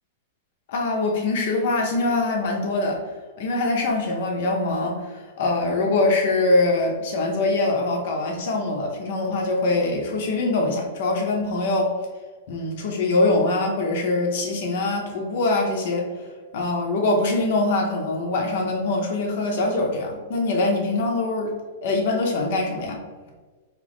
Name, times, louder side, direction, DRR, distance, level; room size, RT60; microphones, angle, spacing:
voice 1, 0.7-3.0 3.4-11.9 12.5-16.1 16.5-21.5 21.8-23.0, left 2 dB, 50° left, 1 dB, 0.6 m, -23 dB
3.8 x 2.9 x 3.4 m, 1.4 s
supercardioid pair, 180°, 0 cm